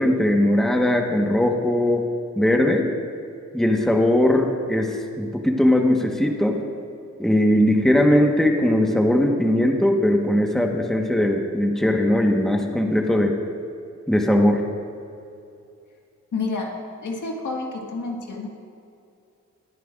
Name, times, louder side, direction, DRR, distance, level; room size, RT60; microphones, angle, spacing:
voice 1, 0.0-2.0 2.4-2.9 3.5-6.6 7.2-13.3 14.1-14.6, left 1 dB, ahead, 2 dB, 1.3 m, -19 dB
voice 2, 16.3-16.7 17.0-18.5, left 3 dB, 80° left, 0 dB, 1.9 m, -29 dB
21.0 x 9.2 x 2.5 m, 2.6 s
cardioid pair, 60°, 30 cm